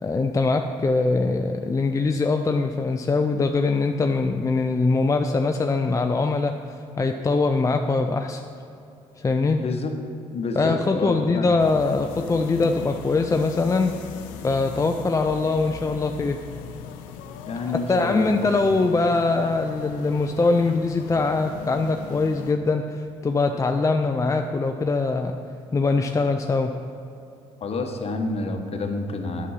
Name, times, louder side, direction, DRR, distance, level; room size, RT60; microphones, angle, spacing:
voice 1, 0.0-8.4 9.2-9.6 10.6-13.9 14.4-16.4 17.7-25.3 25.7-26.8, left 3 dB, 25° left, 5 dB, 0.5 m, -22 dB
voice 2, 9.6-9.9 10.3-11.5 17.5-18.3 27.6-29.5, left 3 dB, 45° left, 5 dB, 1.1 m, -28 dB
sound 1, 11.6-22.5, left 7 dB, 90° left, 0.5 m, -39 dB
8.3 x 6.1 x 5.7 m, 2.7 s
supercardioid pair, 65°, 14 cm